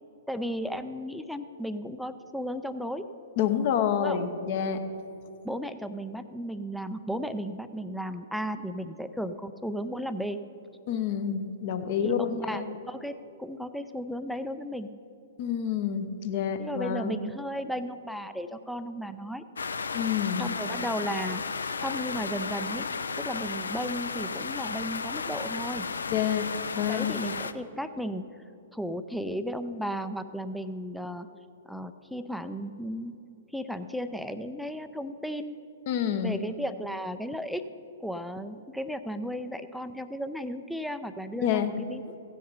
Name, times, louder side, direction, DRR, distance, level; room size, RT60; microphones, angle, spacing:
voice 1, 0.3-3.1 4.0-4.2 5.4-10.4 12.0-14.9 16.6-19.4 20.4-21.4 21.8-22.9 23.2-25.9 26.8-28.2 28.7-31.3 31.7-33.2 33.5-35.6 36.2-37.7 38.0-42.2, equal, ahead, 9 dB, 0.4 m, -35 dB
voice 2, 3.4-4.8 10.9-12.7 15.4-17.2 19.9-20.5 26.1-26.4 26.7-27.2 35.9-36.4 41.4-41.7, left 8 dB, 40° left, 8 dB, 0.9 m, -28 dB
sound 1, 19.6-27.5, left 5 dB, 70° left, 0.5 m, -34 dB
16.5 x 6.4 x 5.4 m, 2.8 s
figure-of-eight pair, 110°, 0 cm